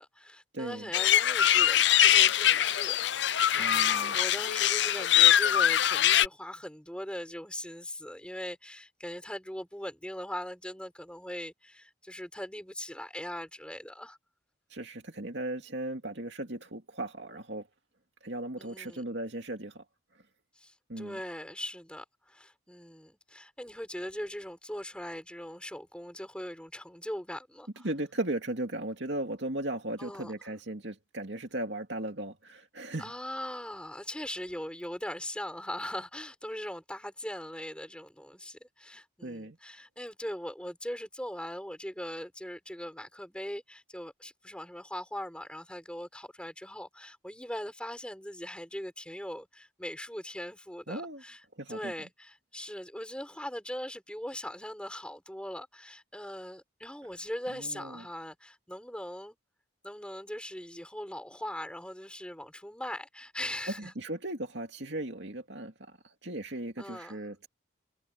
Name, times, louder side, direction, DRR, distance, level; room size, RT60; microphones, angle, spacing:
voice 1, 0.0-14.2 18.6-19.0 20.6-27.9 30.0-30.3 33.0-51.4 51.7-59.3 59.8-63.9 66.8-67.2, left 1 dB, 5° left, 5.9 m, -40 dB
voice 2, 0.5-0.9 3.6-4.2 14.7-17.7 18.2-19.8 20.9-21.2 27.8-33.1 39.2-39.6 50.9-51.2 51.6-51.9 57.5-58.1 63.8-67.5, right 1 dB, 60° right, 2.6 m, -37 dB
sound 1, 0.9-6.3, left 11 dB, 60° left, 0.6 m, -23 dB
head